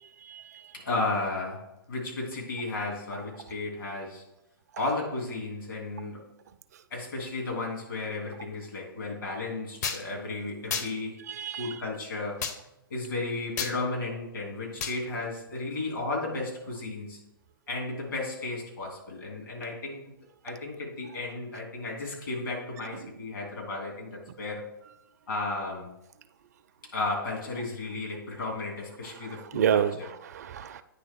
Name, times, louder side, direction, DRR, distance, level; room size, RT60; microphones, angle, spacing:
voice 1, 0.2-0.7 11.3-11.8 29.3-30.8, right 9 dB, 45° right, 12 dB, 0.4 m, -29 dB
voice 2, 0.7-4.2 4.8-6.3 6.9-11.2 11.6-12.5 12.9-17.2 17.7-20.0 20.4-24.7 25.3-25.9 26.8-29.8, left 2 dB, 65° left, -1 dB, 2.9 m, -34 dB
sound 1, 9.8-10.0 10.7-10.9 12.4-12.6 13.6-13.7 14.8-15.0, left 6 dB, 45° left, 0.8 m, -31 dB
9.4 x 3.4 x 4.6 m, 0.86 s
figure-of-eight pair, 120°, 12 cm